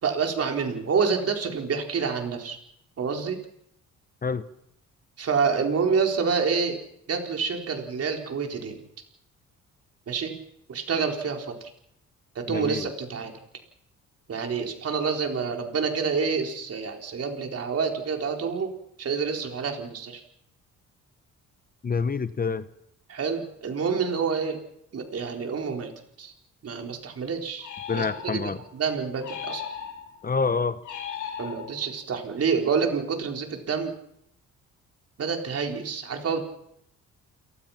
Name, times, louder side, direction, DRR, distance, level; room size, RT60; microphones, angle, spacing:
voice 1, 0.0-2.6 3.0-3.4 5.2-6.8 7.1-8.8 10.1-10.4 10.7-11.5 12.3-13.3 14.3-18.7 19.0-20.2 23.1-24.6 24.9-25.9 26.2-26.3 26.6-29.6 31.4-33.9 35.2-36.4, right 5 dB, 55° right, 4 dB, 4.6 m, -28 dB
voice 2, 12.5-12.9 21.8-22.6 27.9-28.6 30.2-30.8, left 5 dB, 30° left, 13 dB, 1.1 m, -27 dB
sound 1, 27.6-28.6 29.2-30.3 30.8-32.0, left 8 dB, 80° left, 5.1 m, -37 dB
29.0 x 18.5 x 6.0 m, 0.76 s
cardioid pair, 90°, 30 cm